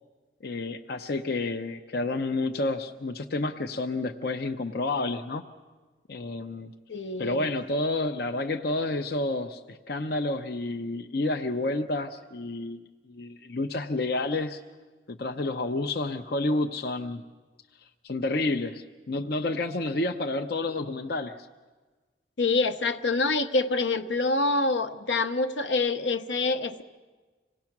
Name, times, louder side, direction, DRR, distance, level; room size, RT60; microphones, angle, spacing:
voice 1, 0.4-5.4 6.1-6.7 7.2-12.8 13.1-14.6 15.1-17.2 18.0-21.5, left 2 dB, 55° left, 5 dB, 0.6 m, -30 dB
voice 2, 6.9-7.5 22.4-26.8, left 3 dB, 80° left, 8 dB, 0.9 m, -26 dB
26.5 x 18.0 x 6.0 m, 1.3 s
head